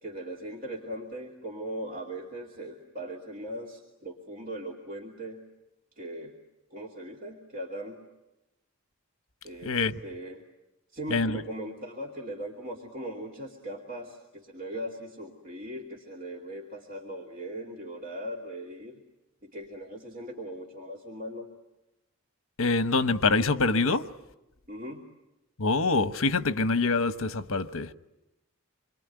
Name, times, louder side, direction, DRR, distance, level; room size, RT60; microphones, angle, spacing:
voice 1, 0.0-5.4 6.0-6.4 6.7-8.0 9.4-10.4 10.9-19.0 19.4-21.5 24.7-25.0, right 1 dB, 40° right, 2.6 m, -39 dB
voice 2, 9.6-10.0 11.1-11.4 22.6-24.1 25.6-27.9, left 3 dB, 75° left, 1.1 m, -25 dB
27.0 x 23.0 x 9.3 m
head